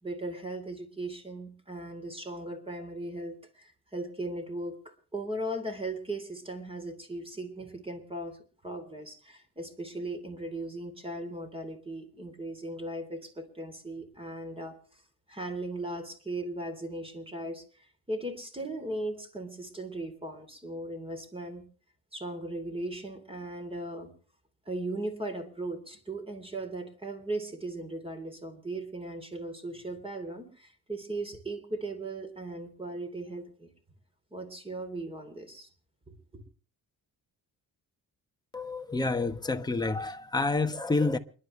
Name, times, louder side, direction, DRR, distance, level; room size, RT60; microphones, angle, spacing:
voice 1, 0.0-8.4 8.6-14.7 15.3-21.6 22.1-24.1 24.7-33.7 34.3-35.7 36.3-36.4, right 1 dB, 15° right, 3.5 m, -38 dB
voice 2, 38.5-41.2, left 3 dB, 10° left, 1.2 m, -28 dB
28.5 x 11.5 x 3.3 m
cardioid pair, 130°, 37 cm